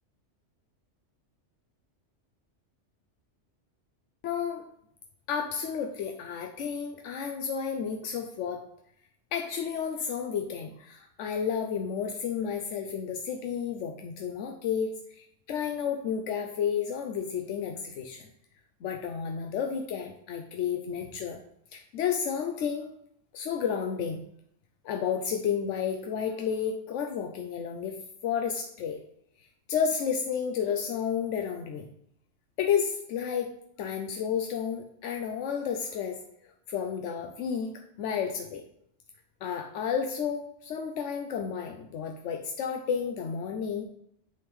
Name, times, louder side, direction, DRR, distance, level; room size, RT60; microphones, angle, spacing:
voice 1, 4.2-4.7 5.3-8.6 9.3-18.3 18.8-21.4 21.7-22.9 23.3-24.2 24.8-28.0 28.2-29.0 29.7-31.9 32.6-33.5 33.8-36.2 36.7-37.7 38.0-38.6 39.4-43.8, left 7 dB, 85° left, 3 dB, 0.9 m, -31 dB
8.3 x 3.6 x 3.2 m, 0.72 s
omnidirectional pair, 1.2 m